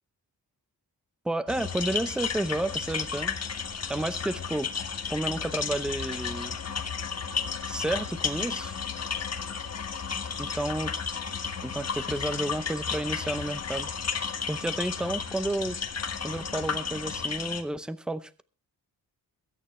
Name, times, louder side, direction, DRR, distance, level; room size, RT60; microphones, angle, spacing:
voice 1, 1.2-3.4 3.9-4.7 5.1-6.6 7.7-8.8 10.4-10.9 11.6-13.9 14.5-15.8 16.2-18.4, right 1 dB, ahead, 12 dB, 0.7 m, -31 dB
sound 1, 1.5-17.6, left 6 dB, 45° left, 1.4 m, -33 dB
22.5 x 9.3 x 3.3 m, 0.36 s
wide cardioid pair, 150°, 36 cm